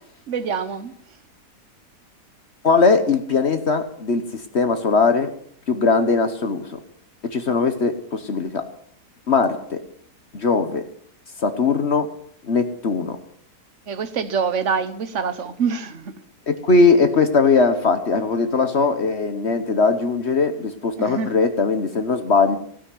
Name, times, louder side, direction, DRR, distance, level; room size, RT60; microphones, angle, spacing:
voice 1, 0.3-0.9 13.9-16.1 21.0-21.3, right 6 dB, 50° right, 12 dB, 1.3 m, -25 dB
voice 2, 2.6-4.2 4.5-5.3 5.7-6.8 7.3-8.6 9.3-9.8 10.3-10.8 11.4-12.1 12.5-13.2 16.5-22.6, left 4 dB, 45° left, 8 dB, 1.2 m, -19 dB
16.5 x 6.4 x 9.4 m, 0.64 s
omnidirectional pair, 1.8 m